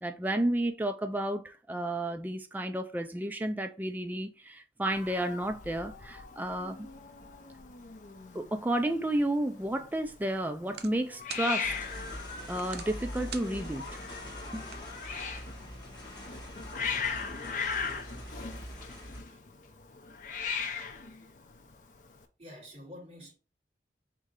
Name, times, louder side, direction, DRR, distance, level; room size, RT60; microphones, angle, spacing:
voice 1, 0.0-6.9 8.3-11.7 12.5-14.0 14.5-14.7, right 1 dB, 10° right, 0.4 m, -32 dB
Hiss, 4.9-22.2, left 5 dB, 45° left, 0.5 m, -39 dB
sound 1, 9.5-15.6, right 8 dB, 65° right, 0.5 m, -50 dB
sound 2, 11.6-19.2, left 1 dB, 25° left, 1.3 m, -43 dB
voice 2, 22.4-23.3, left 1 dB, 35° right, 2.5 m, -49 dB
3.7 x 2.7 x 4.7 m
head